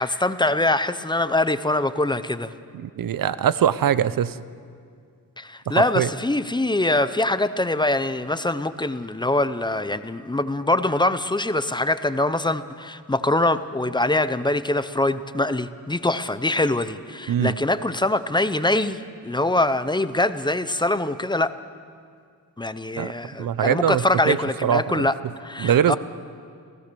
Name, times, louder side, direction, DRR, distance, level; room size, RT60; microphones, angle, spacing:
voice 1, 0.0-2.5 5.4-21.5 22.6-25.1 25.4-26.0, left 2 dB, 15° left, 13 dB, 0.5 m, -23 dB
voice 2, 2.7-4.4 5.7-6.1 17.3-17.6 23.0-23.1 23.4-24.4 24.6-25.1 25.6-26.0, right 9 dB, 70° right, 16 dB, 0.7 m, -22 dB
28.5 x 16.5 x 6.8 m, 2.2 s
wide cardioid pair, 175°, 35 cm